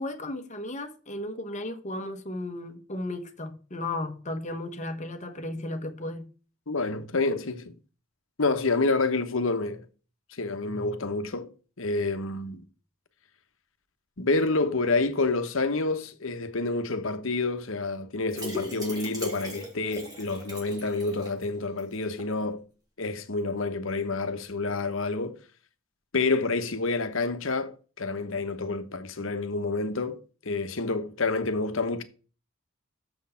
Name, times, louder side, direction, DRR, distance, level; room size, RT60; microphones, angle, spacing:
voice 1, 0.0-6.3, left 1 dB, 35° left, 1.2 m, -35 dB
voice 2, 6.7-7.7 8.4-9.8 10.3-11.5 11.8-12.6 14.2-22.6 23.0-25.4 26.1-32.0, left 3 dB, 65° left, 1.1 m, -28 dB
sound 1, 18.3-21.4 21.8-21.9 22.2-22.3, left 1 dB, 20° right, 3.0 m, -38 dB
7.0 x 6.5 x 5.6 m
head